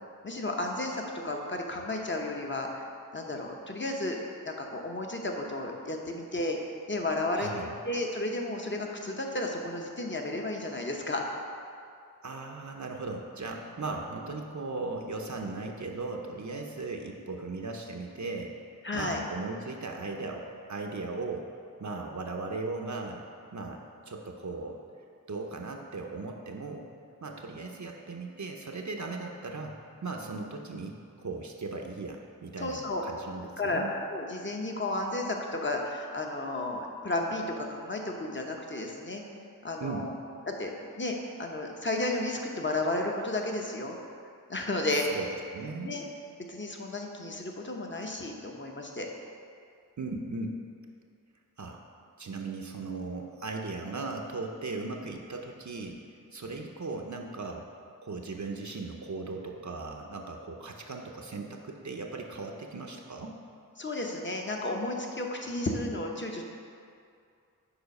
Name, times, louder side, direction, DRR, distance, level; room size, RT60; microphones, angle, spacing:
voice 1, 0.2-2.8 3.1-4.2 4.4-6.6 6.9-7.5 7.8-11.2 13.1-13.2 18.8-19.2 32.6-33.1 33.6-33.8 34.1-39.2 39.6-40.1 40.5-40.7 41.0-44.0 44.5-45.1 45.8-46.0 46.5-49.1 63.8-66.4, left 2 dB, 30° left, 1 dB, 0.9 m, -33 dB
voice 2, 7.4-7.7 12.2-18.5 18.9-21.5 21.8-23.2 23.5-24.8 25.3-26.9 27.2-29.8 30.0-33.9 39.8-40.1 45.0-45.9 50.0-50.6 51.6-51.8 52.2-56.0 56.3-57.7 58.0-63.4, right 3 dB, 55° right, 1 dB, 0.6 m, -37 dB
7.0 x 4.7 x 5.3 m, 2.4 s
wide cardioid pair, 60°, 35 cm